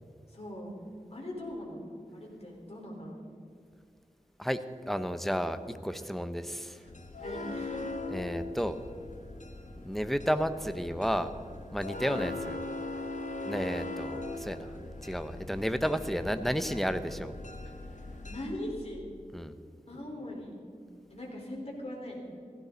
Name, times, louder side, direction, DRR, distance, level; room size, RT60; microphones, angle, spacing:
voice 1, 0.3-0.7 1.1-1.8 2.1-3.1 6.7-6.9 7.2-7.9 11.9-12.1 18.2-19.0 19.9-20.5 21.1-22.2, left 1 dB, 50° left, -2 dB, 4.5 m, -40 dB
voice 2, 4.9-6.8 8.1-8.8 9.8-11.3 11.7-12.6 13.4-14.7 15.0-17.3 19.3-19.5, equal, ahead, 10 dB, 0.9 m, -32 dB
sound 1, 6.9-18.5, left 2 dB, 65° left, 1.6 m, -40 dB
16.5 x 16.0 x 4.1 m, 2.4 s
wide cardioid pair, 65°, 13 cm